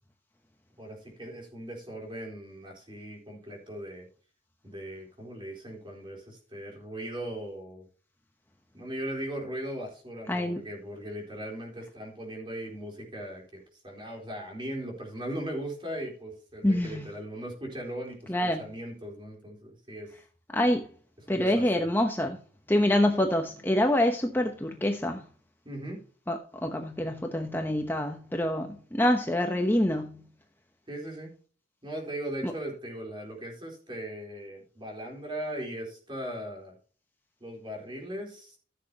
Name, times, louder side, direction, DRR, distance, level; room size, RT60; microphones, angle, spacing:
voice 1, 0.8-4.1 4.6-7.9 8.7-20.1 21.3-21.9 25.6-26.0 30.9-31.3 31.8-36.7 37.4-38.6, right 1 dB, 25° right, 3.9 m, -38 dB
voice 2, 10.3-10.6 16.6-17.0 18.3-18.6 20.5-20.9 21.3-22.4 22.7-25.2 26.3-30.2 32.4-32.5, left 1 dB, 10° left, 0.9 m, -26 dB
15.0 x 7.6 x 2.9 m
head